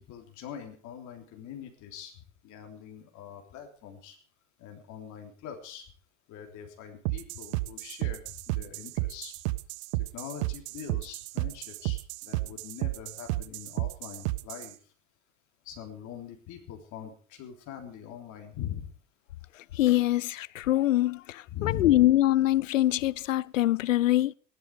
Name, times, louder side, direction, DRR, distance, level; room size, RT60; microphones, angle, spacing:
voice 1, 0.0-2.1 2.4-4.2 4.6-5.9 6.3-9.3 9.9-14.8 15.7-18.9 21.5-22.1, left 9 dB, 50° left, 3.5 m, -42 dB
sound 1, 7.0-14.7, right 21 dB, 55° right, 0.9 m, -32 dB
voice 2, 19.7-24.3, left 14 dB, 75° left, 0.6 m, -24 dB
17.5 x 11.5 x 5.0 m
figure-of-eight pair, 75°, 39 cm